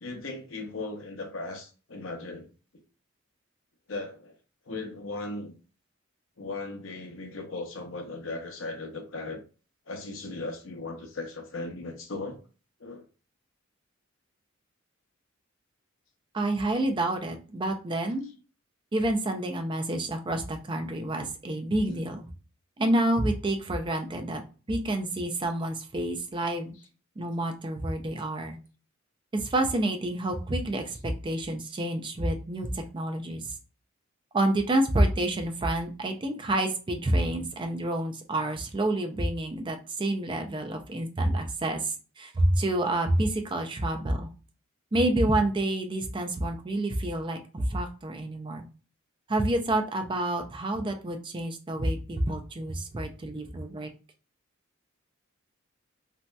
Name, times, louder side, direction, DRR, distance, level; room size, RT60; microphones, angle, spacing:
voice 1, 0.0-2.5 3.9-4.3 4.7-5.5 6.4-9.4 9.9-12.4 12.8-13.0, left 2 dB, 75° left, 0.7 m, -37 dB
voice 2, 16.3-18.3 18.9-22.3 22.8-24.4 24.7-26.7 27.2-28.6 29.3-33.5 34.3-44.3 44.9-48.7 49.3-53.9, right 1 dB, 25° right, 0.4 m, -28 dB
3.0 x 2.7 x 2.2 m
head